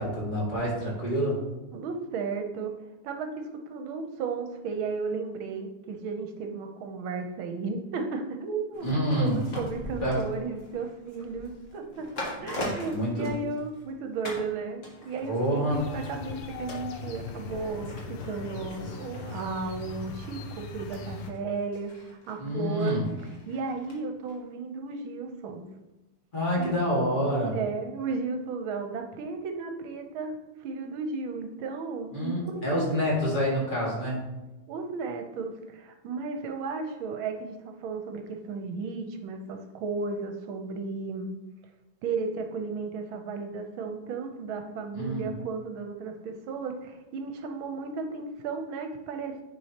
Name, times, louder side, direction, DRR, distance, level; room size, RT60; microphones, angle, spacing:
voice 1, 0.0-1.4 8.8-9.4 10.0-10.2 12.6-13.3 15.2-15.8 22.4-23.0 26.3-27.5 32.1-34.2 44.9-45.3, equal, 25° left, -5 dB, 1.9 m, -27 dB
voice 2, 1.7-2.7 3.0-3.3 3.7-12.1 12.4-21.9 22.3-23.0 23.5-25.6 26.6-27.1 27.5-30.3 30.6-32.9 33.4-33.5 34.7-41.3 42.0-49.4, right 4 dB, 70° right, 5 dB, 1.5 m, -34 dB
sound 1, 8.7-13.9 14.2-14.5 14.8-24.0 24.3-24.4, left 1 dB, 40° left, 1.4 m, -42 dB
sound 2, 15.7-21.3, left 5 dB, 80° left, 1.6 m, -40 dB
9.6 x 4.6 x 2.9 m, 1.0 s
omnidirectional pair, 2.4 m